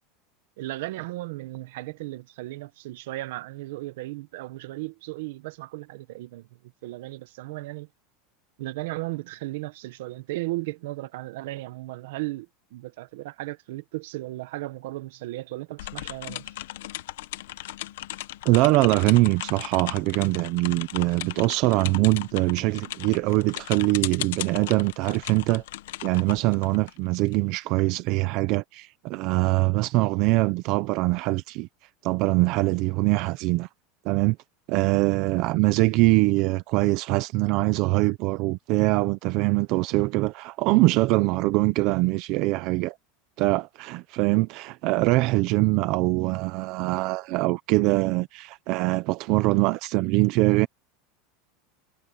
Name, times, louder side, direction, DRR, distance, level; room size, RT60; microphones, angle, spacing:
voice 1, 0.6-6.5 6.8-7.9 8.6-16.5, right 19 dB, 65° right, 1.0 m, -35 dB
sound 1, 15.8-27.3, left 15 dB, 85° left, 1.0 m, -37 dB
voice 2, 18.4-25.6 26.0-31.7 32.0-33.7 34.0-34.4 34.7-43.0 43.4-50.7, right 21 dB, 40° right, 0.6 m, -23 dB
supercardioid pair, 175°, 0 cm